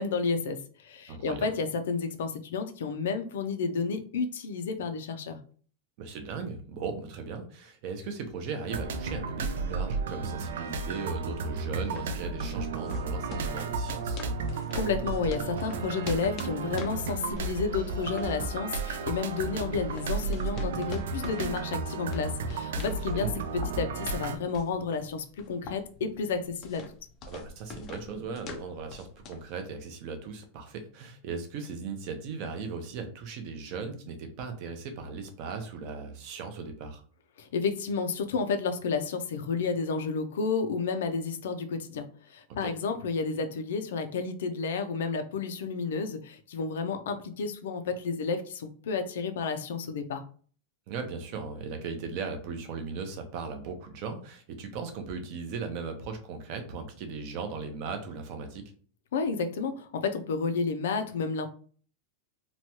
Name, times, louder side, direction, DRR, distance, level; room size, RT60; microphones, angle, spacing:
voice 1, 0.0-5.4 14.5-26.8 37.4-50.2 59.1-61.5, left 5 dB, 85° left, 7 dB, 0.5 m, -31 dB
voice 2, 1.1-1.5 6.0-14.2 23.0-23.4 27.3-37.0 42.6-42.7 50.9-58.6, right 5 dB, 40° right, 5 dB, 0.5 m, -38 dB
sound 1, 8.7-24.4, right 4 dB, 85° right, 0.4 m, -33 dB
sound 2, 11.7-29.5, left 4 dB, 25° left, 0.3 m, -46 dB
3.0 x 2.2 x 2.8 m, 0.44 s
supercardioid pair, 175°, 0 cm